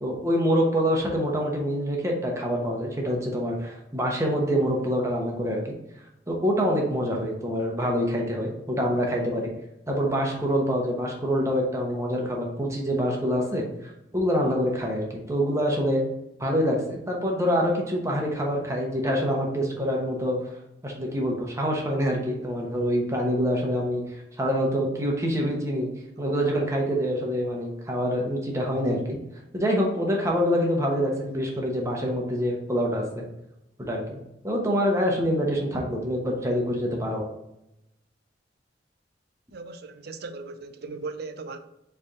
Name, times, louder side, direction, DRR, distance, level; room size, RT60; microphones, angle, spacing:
voice 1, 0.0-5.7 6.3-9.5 9.9-16.0 16.4-20.5 20.8-25.9 26.2-29.2 29.5-33.2 33.8-34.2 34.4-37.2, equal, 15° right, 0.9 m, -26 dB
voice 2, 39.5-41.6, right 3 dB, 60° right, 0.5 m, -37 dB
4.1 x 3.4 x 3.7 m
head